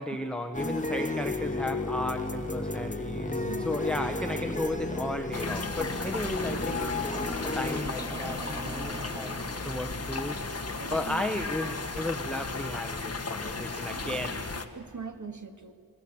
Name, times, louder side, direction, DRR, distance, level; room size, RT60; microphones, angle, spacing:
voice 1, 0.0-6.9 7.5-9.3 9.6-10.4 10.9-14.5, left 1 dB, 5° left, 5 dB, 1.2 m, -34 dB
sound 1, 0.5-7.8, left 2 dB, 20° left, 1.7 m, -32 dB
voice 2, 2.9-3.9 10.8-11.5 13.9-14.3 14.7-15.7, right 5 dB, 50° right, 7 dB, 1.9 m, -43 dB
sound 2, 5.3-14.7, left 4 dB, 40° left, 1.6 m, -35 dB
sound 3, 6.7-14.8, right 1 dB, 15° right, 2.2 m, -44 dB
28.0 x 20.5 x 8.7 m, 2.3 s
wide cardioid pair, 100°, 37 cm